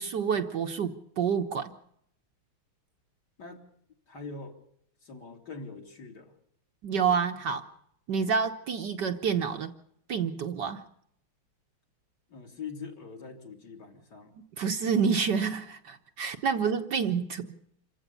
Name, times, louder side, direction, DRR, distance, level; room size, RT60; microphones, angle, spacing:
voice 1, 0.0-1.7 6.8-7.7 8.1-9.7 10.1-10.8 14.6-17.5, right 6 dB, 55° right, 6 dB, 1.6 m, -28 dB
voice 2, 3.4-3.7 4.1-4.6 5.0-6.3 12.3-14.3, left 4 dB, 50° left, 2 dB, 3.4 m, -43 dB
27.5 x 15.5 x 6.9 m, 0.71 s
omnidirectional pair, 2.4 m